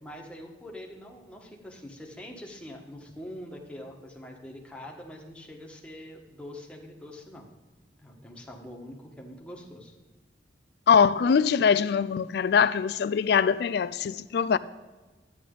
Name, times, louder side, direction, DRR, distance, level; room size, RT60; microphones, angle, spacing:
voice 1, 0.0-7.5 8.0-9.9, left 1 dB, 5° left, 1.5 m, -44 dB
voice 2, 10.9-14.6, left 6 dB, 65° left, 0.3 m, -22 dB
11.5 x 9.4 x 3.9 m
head